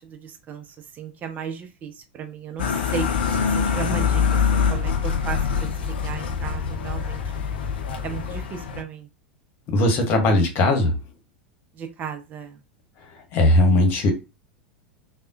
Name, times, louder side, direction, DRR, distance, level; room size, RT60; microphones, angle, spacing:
voice 1, 0.0-7.2 8.0-9.1 11.7-12.6, right 7 dB, 30° right, 0.5 m, -35 dB
sound 1, 2.6-8.8, left 6 dB, 65° left, 0.5 m, -25 dB
sound 2, 3.0-8.5, left 6 dB, 25° left, 0.6 m, -31 dB
voice 2, 9.7-11.0 13.3-14.1, left 1 dB, 40° left, 1.0 m, -18 dB
3.5 x 2.1 x 2.5 m
figure-of-eight pair, 85°, 6 cm